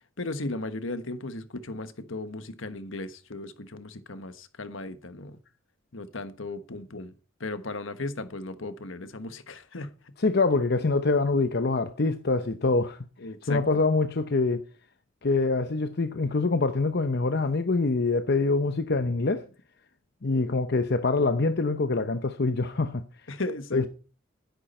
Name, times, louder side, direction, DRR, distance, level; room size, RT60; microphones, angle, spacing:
voice 1, 0.2-5.4 5.9-7.1 7.4-10.1 13.2-13.6 23.3-23.9, left 2 dB, 75° left, 1.4 m, -36 dB
voice 2, 10.2-13.0 13.5-14.6 15.2-19.4 20.2-23.0 23.7-23.9, left 3 dB, 55° left, 0.8 m, -25 dB
13.0 x 10.5 x 4.3 m
head